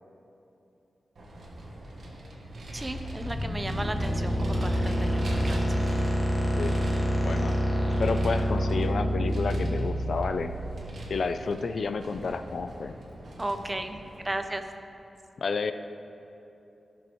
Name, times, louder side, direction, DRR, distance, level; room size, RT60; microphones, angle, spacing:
Vehicle, 1.1-14.4, right 1 dB, 70° right, 1.3 m, -40 dB
sound 1, 2.3-11.2, equal, 25° left, 1.3 m, -28 dB
voice 1, 2.7-5.8 13.4-14.0 14.2-14.6, right 1 dB, 20° right, 7 dB, 0.5 m, -34 dB
voice 2, 7.2-7.6 7.9-10.5 11.1-12.9 15.4-15.7, left 4 dB, 65° left, 10 dB, 0.3 m, -30 dB
15.0 x 6.1 x 3.1 m, 2.9 s
wide cardioid pair, 125°, 0 cm